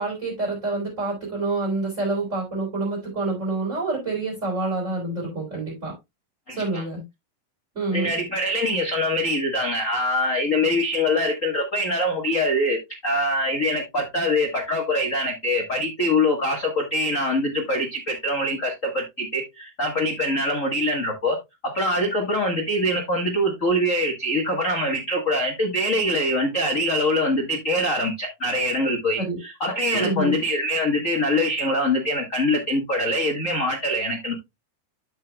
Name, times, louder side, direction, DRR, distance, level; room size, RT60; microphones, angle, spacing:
voice 1, 0.0-5.9 6.5-7.0 7.7-8.1 29.2-29.4 29.9-30.4, right 2 dB, 20° right, 4.0 m, -27 dB
voice 2, 6.5-6.8 7.9-21.4 21.6-34.4, left 1 dB, 75° left, 0.7 m, -24 dB
12.5 x 5.6 x 2.2 m
omnidirectional pair, 3.8 m